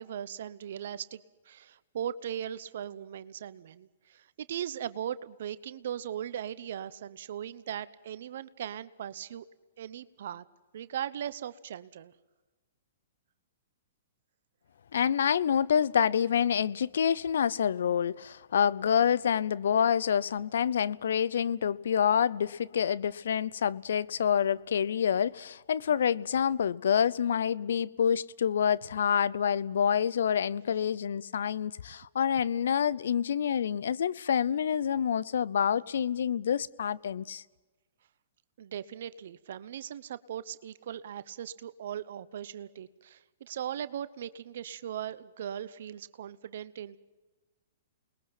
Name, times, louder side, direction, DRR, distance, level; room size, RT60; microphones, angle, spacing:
voice 1, 0.0-9.5 9.8-10.4 10.7-12.1 38.6-47.0, right 10 dB, 65° right, 0.8 m, -39 dB
voice 2, 14.9-37.4, left 8 dB, 75° left, 0.6 m, -27 dB
29.0 x 21.0 x 6.0 m
hypercardioid pair, 125°, 0 cm